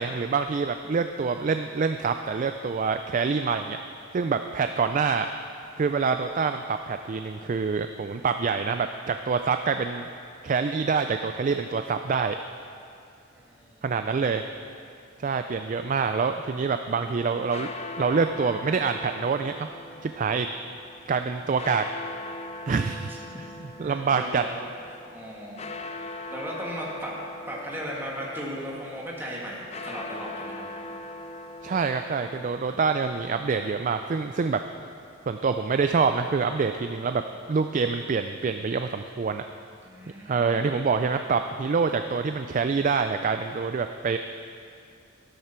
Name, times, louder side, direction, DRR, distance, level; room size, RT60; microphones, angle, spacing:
voice 1, 0.0-3.8 4.1-5.3 5.8-10.1 10.4-12.4 13.8-14.4 15.2-17.7 18.0-19.7 20.0-20.5 21.1-21.9 22.7-23.1 23.8-24.4 31.6-34.6 35.3-37.2 37.5-39.4 40.3-44.2, right 5 dB, 40° right, 8 dB, 0.3 m, -26 dB
voice 2, 13.3-13.8 23.1-23.4 23.7-24.6 24.9-25.7 26.3-27.2 27.5-30.7 39.8-40.7, equal, 10° right, -4 dB, 2.0 m, -37 dB
sound 1, 17.2-32.5, left 2 dB, 30° left, 0.6 m, -41 dB
12.5 x 12.5 x 4.4 m, 2.4 s
head